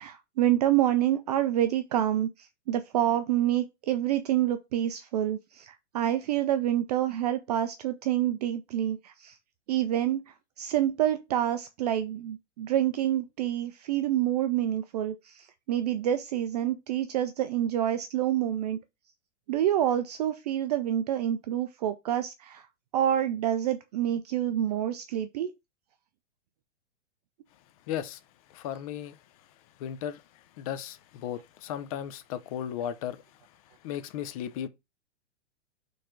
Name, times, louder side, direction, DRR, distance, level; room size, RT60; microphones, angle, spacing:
voice 1, 0.0-9.4 9.7-18.8 19.5-22.7 22.9-25.5, right 11 dB, 35° right, 0.4 m, -27 dB
voice 2, 27.9-28.2 28.5-29.2 29.8-30.2 30.6-33.2 33.8-34.7, left 10 dB, 30° left, 0.5 m, -35 dB
4.2 x 3.2 x 3.7 m
figure-of-eight pair, 110°, 35 cm